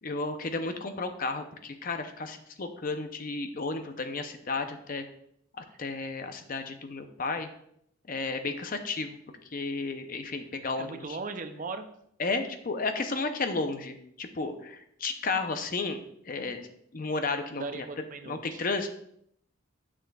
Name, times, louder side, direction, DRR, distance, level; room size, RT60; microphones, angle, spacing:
voice 1, 0.0-5.0 5.6-7.5 8.1-9.2 9.5-11.2 12.2-16.7 16.9-17.9 18.2-18.9, left 3 dB, 40° left, 7 dB, 0.6 m, -33 dB
voice 2, 10.8-11.9 17.5-18.6, right 3 dB, 40° right, 8 dB, 0.5 m, -38 dB
9.2 x 6.1 x 2.3 m, 0.71 s
head